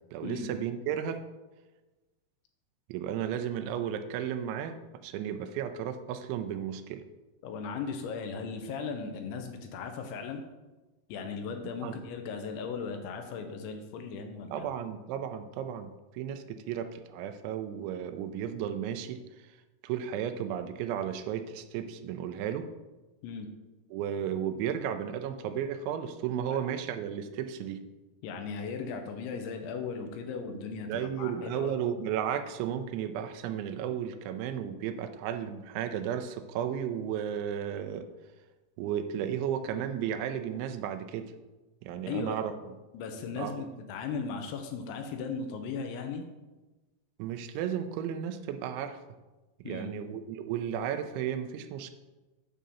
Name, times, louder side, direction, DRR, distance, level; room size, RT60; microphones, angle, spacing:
voice 1, 0.1-1.2 2.9-4.8 5.0-7.0 11.8-12.0 14.5-19.2 19.8-22.7 23.9-27.8 30.9-38.1 38.8-41.3 41.8-42.5 43.4-43.5 47.2-49.0 49.7-51.9, right 9 dB, 85° right, 8 dB, 2.9 m, -34 dB
voice 2, 7.4-10.4 11.1-14.7 23.2-23.5 26.5-26.6 28.2-31.7 42.1-42.4 42.9-46.3 49.6-49.9, left 5 dB, 80° left, 5 dB, 3.2 m, -37 dB
9.0 x 3.7 x 6.8 m, 1.1 s
omnidirectional pair, 5.3 m